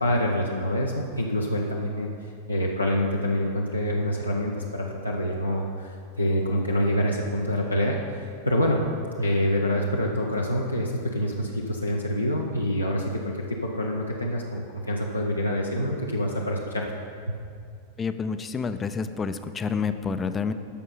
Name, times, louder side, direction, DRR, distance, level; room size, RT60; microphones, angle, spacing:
voice 1, 0.0-2.1 2.5-8.8 9.2-17.0 17.3-17.4, equal, 85° left, -2 dB, 0.8 m, -26 dB
voice 2, 18.0-20.5, left 5 dB, 20° left, 10 dB, 0.5 m, -28 dB
14.0 x 5.5 x 5.5 m, 2.3 s
figure-of-eight pair, 90°, 0 cm